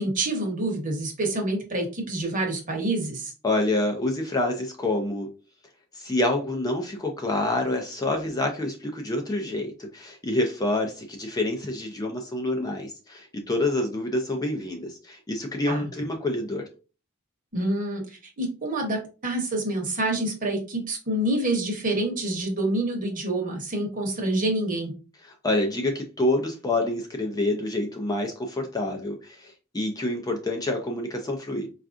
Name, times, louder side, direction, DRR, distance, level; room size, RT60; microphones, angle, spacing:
voice 1, 0.0-3.3 15.7-15.9 17.5-24.9, right 1 dB, 35° right, 1.0 m, -27 dB
voice 2, 3.4-5.3 5.9-16.7 25.2-31.7, left 2 dB, 15° left, 0.4 m, -27 dB
4.4 x 2.4 x 2.5 m
head